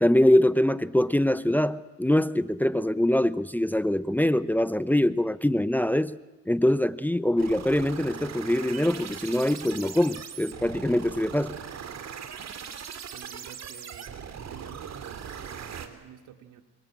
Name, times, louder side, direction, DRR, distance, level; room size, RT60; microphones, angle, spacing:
voice 1, 0.0-6.2 6.5-11.6, left 1 dB, 5° left, 15 dB, 0.8 m, -23 dB
sound 1, 7.4-15.9, right 7 dB, 60° right, 3.0 m, -40 dB
voice 2, 13.1-14.1 14.5-16.6, right 9 dB, 85° right, 7 dB, 2.6 m, -48 dB
25.5 x 24.0 x 8.8 m, 1.2 s
cardioid pair, 90°, 30 cm